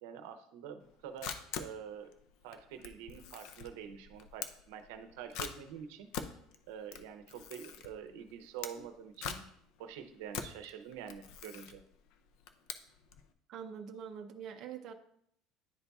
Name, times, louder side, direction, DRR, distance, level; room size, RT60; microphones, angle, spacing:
voice 1, 0.0-2.1 2.4-6.1 6.7-9.4 9.8-11.8, right 8 dB, 85° right, 8 dB, 0.6 m, -46 dB
Camera, 0.8-13.3, left 7 dB, 55° left, 0.5 m, -45 dB
voice 2, 13.5-14.9, right 7 dB, 40° right, 4 dB, 0.5 m, -44 dB
10.5 x 4.0 x 2.3 m, 0.70 s
cardioid pair, 170°, 0 cm